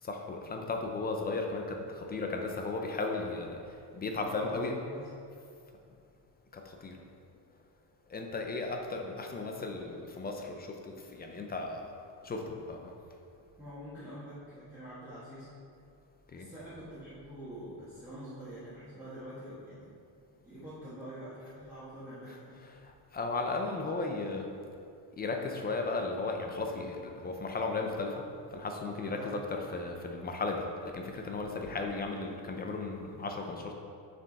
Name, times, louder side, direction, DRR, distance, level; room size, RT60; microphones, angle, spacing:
voice 1, 0.0-4.8 6.5-7.0 8.1-11.9 12.2-12.9 16.3-16.5 22.8-24.5 25.1-33.7, left 3 dB, 25° left, 3 dB, 0.4 m, -35 dB
voice 2, 4.2-5.1 13.6-15.5 16.3-19.9 20.4-22.6 29.0-29.4, equal, 5° right, -14 dB, 1.5 m, -45 dB
6.8 x 6.1 x 4.0 m, 2.4 s
cardioid pair, 180°, 43 cm